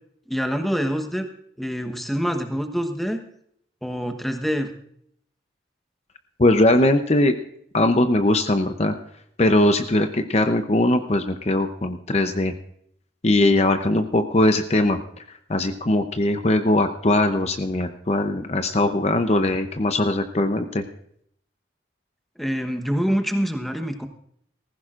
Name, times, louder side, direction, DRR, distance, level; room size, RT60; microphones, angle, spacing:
voice 1, 0.3-1.3 1.6-3.2 3.8-4.7 22.4-24.1, equal, ahead, 6 dB, 1.0 m, -25 dB
voice 2, 6.4-7.3 7.7-9.0 9.4-12.5 13.2-15.0 15.5-20.8, left 1 dB, 35° left, 7 dB, 0.7 m, -20 dB
19.0 x 15.0 x 2.5 m, 0.68 s
head